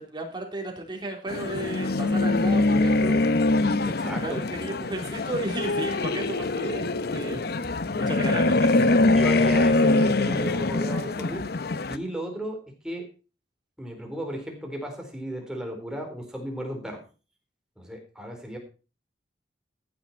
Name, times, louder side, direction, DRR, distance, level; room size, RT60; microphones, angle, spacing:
voice 1, 0.0-3.3 4.2-7.4 7.9-8.8, right 1 dB, 25° right, 1 dB, 3.7 m, -34 dB
sound 1, 1.3-12.0, left 2 dB, 60° left, 0.8 m, -23 dB
voice 2, 3.9-4.4 7.3-7.5 9.1-11.4 11.9-13.1 13.8-17.0 17.8-18.6, equal, 5° right, 2 dB, 4.2 m, -34 dB
15.0 x 9.8 x 4.5 m, 0.34 s
head